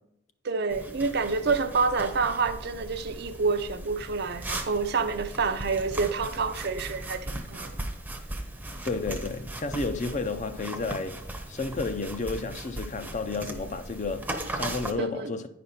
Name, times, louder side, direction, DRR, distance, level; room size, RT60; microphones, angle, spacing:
voice 1, 0.4-7.8 15.0-15.3, right 4 dB, 50° right, 0.5 m, -28 dB
sound 1, 0.7-14.9, right 1 dB, 10° right, 0.7 m, -38 dB
voice 2, 8.8-11.2 11.5-15.5, left 3 dB, 35° left, 0.5 m, -32 dB
9.8 x 5.1 x 4.3 m
head